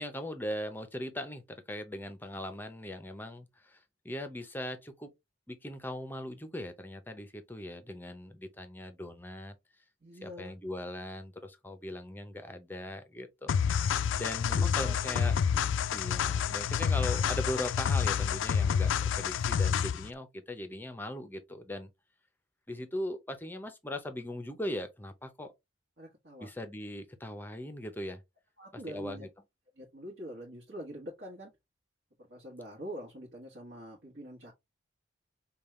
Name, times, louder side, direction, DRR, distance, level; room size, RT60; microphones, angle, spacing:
voice 1, 0.0-1.4 1.7-5.1 5.5-9.6 10.2-15.4 15.9-21.9 22.7-25.5 26.4-28.2 28.7-29.3, left 1 dB, 10° left, 0.6 m, -39 dB
voice 2, 10.0-10.5 14.1-14.2 14.5-15.2 26.0-26.5 28.6-29.3 29.8-31.5 32.2-34.5, equal, 60° right, 1.3 m, -45 dB
sound 1, 13.5-20.1, left 7 dB, 75° left, 0.3 m, -28 dB
5.3 x 2.3 x 3.1 m
head